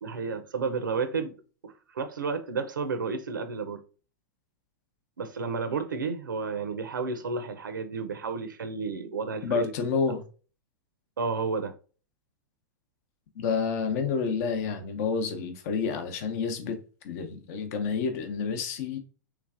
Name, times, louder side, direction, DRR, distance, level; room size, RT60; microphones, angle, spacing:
voice 1, 0.0-1.3 1.6-3.8 5.2-9.7 11.2-11.7, right 4 dB, 85° right, 0.4 m, -31 dB
voice 2, 9.4-10.2 13.3-16.8 17.0-19.0, left 5 dB, 55° left, 0.7 m, -29 dB
3.3 x 3.1 x 2.4 m
hypercardioid pair, 105°, 10 cm